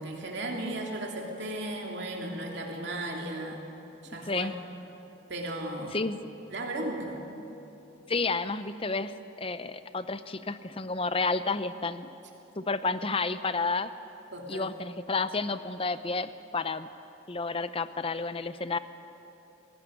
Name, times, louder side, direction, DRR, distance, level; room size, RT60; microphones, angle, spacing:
voice 1, 0.0-3.6 4.0-4.5 5.3-6.0 6.5-7.3 14.3-14.7, right 1 dB, 55° right, 0 dB, 3.1 m, -35 dB
voice 2, 8.1-9.1 9.4-12.1 12.6-13.9 14.5-16.9 17.3-18.8, left 3 dB, 25° left, 12 dB, 0.7 m, -31 dB
20.0 x 18.0 x 8.9 m, 2.9 s
head